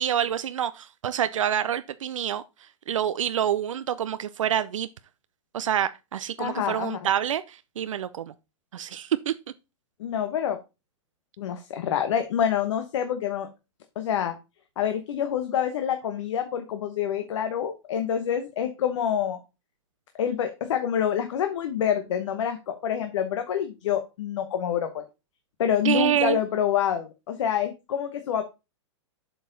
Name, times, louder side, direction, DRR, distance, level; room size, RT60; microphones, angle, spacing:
voice 1, 0.0-2.4 2.9-4.9 5.5-8.3 8.7-9.3 25.8-26.4, right 10 dB, 85° right, 0.5 m, -27 dB
voice 2, 6.4-7.0 10.0-10.6 11.4-13.5 14.0-14.4 14.8-19.4 20.2-25.0 25.6-28.4, left 9 dB, 70° left, 1.0 m, -27 dB
7.6 x 4.5 x 3.9 m
hypercardioid pair, 125°, 16 cm